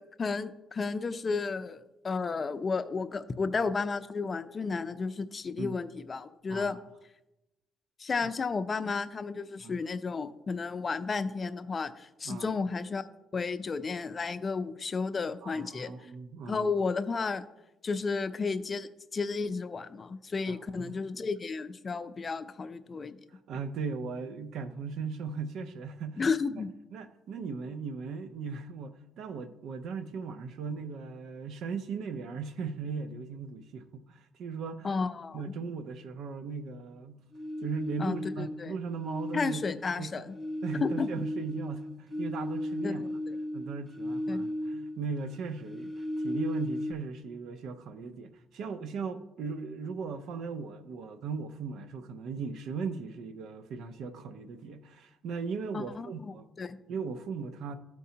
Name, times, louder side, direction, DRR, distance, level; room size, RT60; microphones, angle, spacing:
voice 1, 0.0-6.8 8.0-13.1 13.3-15.9 16.5-17.4 17.8-23.2 26.2-26.7 34.8-35.6 38.0-38.7 39.3-40.3 40.8-41.1 42.8-43.4 44.3-44.5 55.7-56.8, left 4 dB, 35° left, 0.5 m, -33 dB
voice 2, 15.4-16.7 20.5-21.0 23.5-26.2 26.5-26.6 26.9-34.9 35.3-37.2 37.6-39.6 40.0-40.3 40.6-43.0 43.5-56.4 56.9-57.7, right 5 dB, 80° right, 0.6 m, -38 dB
sound 1, 37.3-38.6 39.0-45.1 45.3-46.9, left 1 dB, 5° left, 1.2 m, -35 dB
13.5 x 4.5 x 2.8 m
cardioid pair, 90°, 0 cm